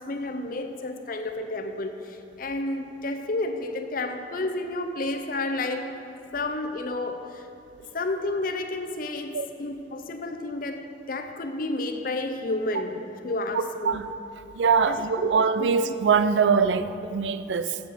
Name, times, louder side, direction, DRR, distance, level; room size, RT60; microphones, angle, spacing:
voice 1, 0.0-5.9 6.3-7.5 7.8-14.0 14.9-15.3 15.6-15.7, left 2 dB, 50° left, 6 dB, 0.6 m, -31 dB
voice 2, 14.5-17.8, right 5 dB, 85° right, 12 dB, 0.4 m, -22 dB
7.6 x 7.1 x 6.3 m, 2.7 s
head